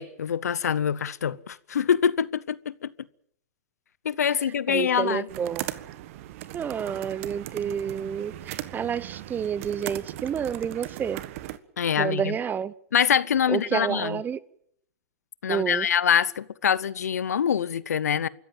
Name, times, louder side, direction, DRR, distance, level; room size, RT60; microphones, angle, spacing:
voice 1, 0.0-2.9 4.0-5.3 11.8-12.4 12.9-14.2 15.4-18.3, left 8 dB, 90° left, 0.8 m, -25 dB
voice 2, 4.7-5.7 6.5-11.2 12.0-12.7 13.5-14.4 15.5-15.9, right 8 dB, 20° right, 0.9 m, -29 dB
sound 1, 5.3-11.6, right 15 dB, 60° right, 1.5 m, -38 dB
25.0 x 14.5 x 8.8 m
hypercardioid pair, 120°, 8 cm